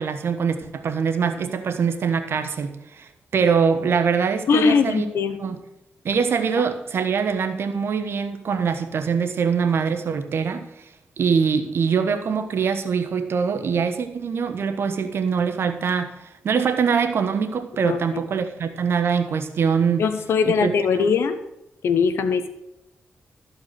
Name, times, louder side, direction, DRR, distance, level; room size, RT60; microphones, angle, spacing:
voice 1, 0.0-5.1 5.4-5.6 6.0-10.7 11.2-20.0 20.4-21.1, right 6 dB, 70° right, 8 dB, 1.1 m, -23 dB
voice 2, 4.5-5.4 17.8-18.2 20.0-21.4 21.8-22.5, left 5 dB, 85° left, 11 dB, 0.8 m, -21 dB
13.5 x 4.7 x 6.6 m, 0.86 s
cardioid pair, 60°, 4 cm